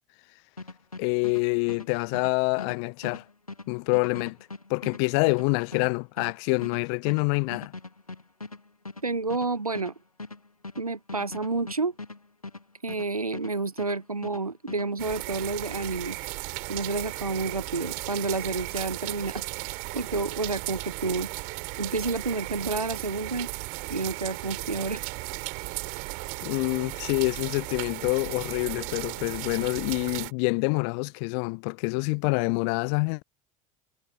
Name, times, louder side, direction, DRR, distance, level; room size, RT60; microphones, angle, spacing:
sound 1, 0.6-13.5 13.8-14.9, left 3 dB, 90° left, 1.7 m, -41 dB
voice 1, 1.0-3.2 3.7-4.4 4.7-7.7 26.4-33.2, left 38 dB, 50° left, 0.5 m, -26 dB
voice 2, 9.0-9.9 10.8-11.9 12.8-16.2 16.7-19.4 19.9-21.3 21.8-23.5 23.9-25.0, right 3 dB, 90° right, 0.9 m, -30 dB
sound 2, 15.0-30.3, right 30 dB, 55° right, 2.8 m, -36 dB
figure-of-eight pair, 70°, 18 cm